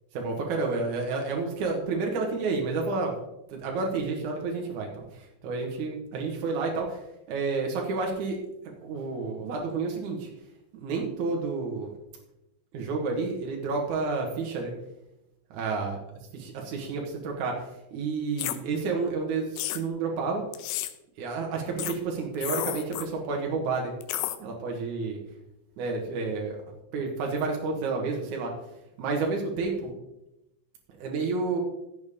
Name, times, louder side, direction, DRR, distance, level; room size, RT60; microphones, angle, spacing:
voice 1, 0.1-3.2 3.5-7.0 7.3-8.4 8.6-10.3 10.7-11.9 12.7-14.7 15.5-16.0 16.3-17.6 17.9-20.4 21.2-23.9 24.4-25.2 25.8-26.6 26.9-28.5 29.0-29.9 31.0-31.6, right 4 dB, 70° right, 1 dB, 1.9 m, -30 dB
sound 1, 18.4-18.6 19.6-19.8 20.5-20.9 21.8-21.9 22.3-23.1 24.0-24.4, left 14 dB, 90° left, 3.2 m, -31 dB
15.0 x 7.0 x 3.6 m, 0.87 s
omnidirectional pair, 5.5 m